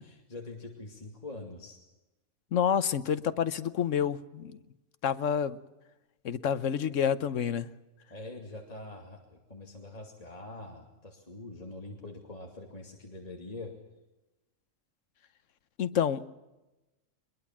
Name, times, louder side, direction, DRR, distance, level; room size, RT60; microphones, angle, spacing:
voice 1, 0.3-1.8 8.1-13.7, left 2 dB, 25° left, 1 dB, 2.6 m, -44 dB
voice 2, 2.5-4.6 5.0-5.6 6.2-7.7 15.8-16.3, left 8 dB, 65° left, 13 dB, 1.3 m, -28 dB
23.0 x 22.0 x 7.4 m, 1.0 s
omnidirectional pair, 1.4 m